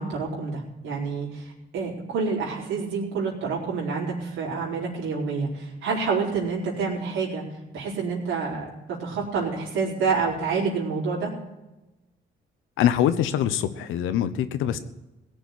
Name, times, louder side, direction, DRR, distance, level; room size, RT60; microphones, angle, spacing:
voice 1, 0.0-7.4 7.7-11.3, right 5 dB, 90° right, -5 dB, 4.4 m, -28 dB
voice 2, 12.8-14.8, left 10 dB, 90° left, 11 dB, 1.0 m, -23 dB
17.0 x 7.0 x 9.4 m, 1.0 s
cardioid pair, 90°, 20 cm